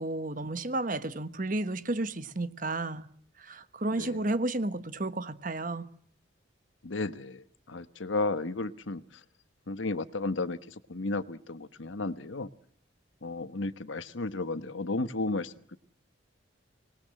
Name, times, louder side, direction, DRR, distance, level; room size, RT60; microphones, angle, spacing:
voice 1, 0.0-3.1 3.4-5.9, right 2 dB, 45° right, 1.3 m, -32 dB
voice 2, 6.8-9.0 9.7-12.5 13.2-15.8, left 2 dB, 80° left, 1.2 m, -33 dB
25.5 x 20.0 x 7.6 m
head